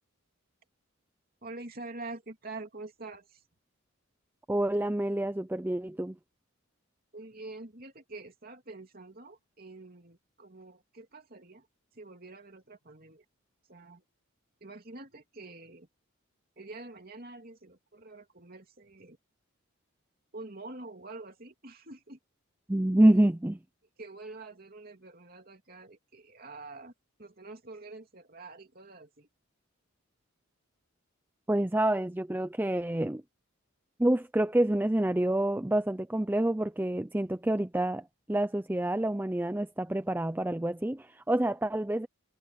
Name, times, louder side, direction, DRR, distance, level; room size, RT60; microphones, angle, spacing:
voice 1, 1.4-3.4 7.1-11.7 11.9-13.2 13.7-14.0 14.6-15.9 16.6-19.2 20.3-22.2 23.2-23.3 24.0-26.9 27.2-29.3, right 2 dB, 45° right, 3.0 m, -46 dB
voice 2, 4.5-6.2 22.7-23.6 31.5-33.2 34.0-42.1, right 1 dB, 10° right, 0.4 m, -27 dB
head